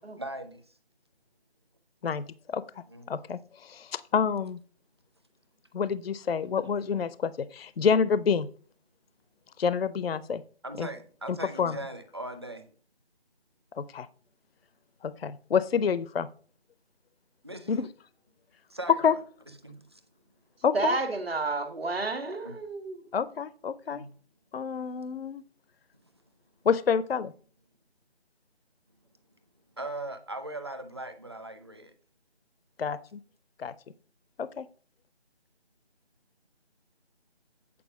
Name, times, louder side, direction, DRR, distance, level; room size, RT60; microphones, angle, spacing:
voice 1, 0.2-0.7 2.9-3.1 10.6-12.7 17.4-17.8 18.7-19.2 19.6-20.0 22.4-22.5 23.8-24.1 29.8-31.9, right 1 dB, 25° right, 7 dB, 0.6 m, -39 dB
voice 2, 2.0-4.6 5.7-8.5 9.6-10.4 10.8-10.9 11.6-11.8 13.7-14.1 15.0-16.3 17.7-17.9 19.0-19.1 20.6-21.0 23.1-24.0 24.5-25.4 26.6-27.3 32.8-33.2 33.6-33.7 34.4-34.7, left 6 dB, 60° left, 17 dB, 0.5 m, -28 dB
voice 3, 20.7-23.0, right 3 dB, 60° right, 8 dB, 1.5 m, -30 dB
8.4 x 4.6 x 5.9 m, 0.43 s
figure-of-eight pair, 160°, 34 cm